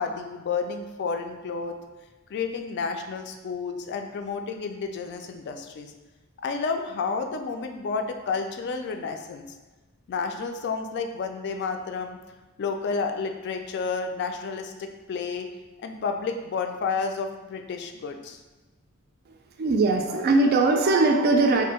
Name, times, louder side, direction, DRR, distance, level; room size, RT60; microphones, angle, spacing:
voice 1, 0.0-1.8 2.3-5.9 6.4-9.5 10.1-12.2 12.6-15.5 15.8-18.4, left 5 dB, 55° left, 5 dB, 0.3 m, -31 dB
voice 2, 19.6-21.6, right 3 dB, 45° right, 3 dB, 0.3 m, -20 dB
2.7 x 2.5 x 4.2 m, 1.2 s
head